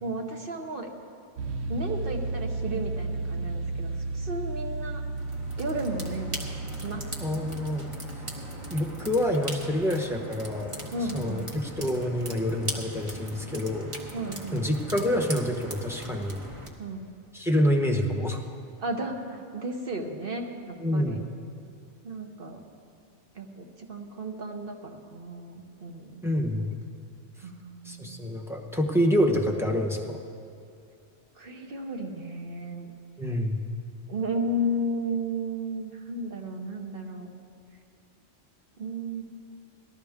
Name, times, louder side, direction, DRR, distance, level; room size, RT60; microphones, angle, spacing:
voice 1, 0.0-0.9 1.7-5.0 5.6-6.4 6.8-7.1 10.9-11.5 14.1-14.7 16.8-17.1 18.8-21.2 22.0-22.6 23.3-26.2 27.4-28.2 31.4-32.9 34.1-37.3 38.8-39.2, right 1 dB, 50° right, 2 dB, 1.3 m, -34 dB
sound 1, 1.4-12.2, right 3 dB, 80° right, 1.2 m, -35 dB
sound 2, 5.2-16.7, right 1 dB, 25° right, 1.2 m, -40 dB
voice 2, 7.2-7.9 8.7-10.7 11.1-13.9 14.5-16.4 17.3-18.4 20.8-21.2 26.2-26.8 27.8-30.2 33.2-33.6, equal, ahead, 2 dB, 0.9 m, -27 dB
19.0 x 13.5 x 3.6 m, 2.5 s
omnidirectional pair, 1.3 m